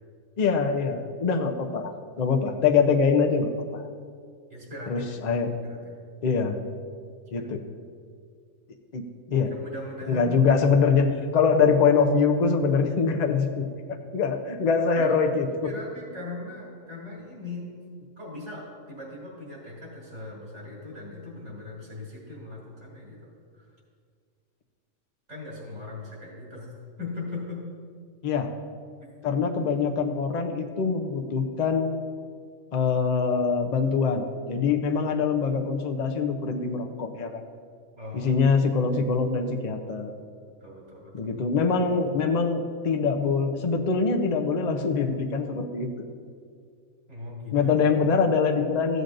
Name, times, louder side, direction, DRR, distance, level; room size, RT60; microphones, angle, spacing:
voice 1, 0.4-3.8 4.9-5.5 6.2-6.6 7.3-7.6 8.9-9.5 10.1-15.7 28.2-28.5 29.2-32.0 32.7-37.4 38.1-40.1 41.1-45.9 47.5-49.0, left 5 dB, 45° left, 4 dB, 0.6 m, -24 dB
voice 2, 4.5-5.1 5.6-5.8 7.4-7.5 9.4-10.4 15.0-15.1 15.4-17.7 18.2-23.7 25.3-26.7 27.0-27.6 29.0-29.1 38.0-38.3 40.6-41.3 47.1-47.7, left 2 dB, 55° right, -4 dB, 3.1 m, -39 dB
14.5 x 7.9 x 2.6 m, 2.1 s
omnidirectional pair, 1.4 m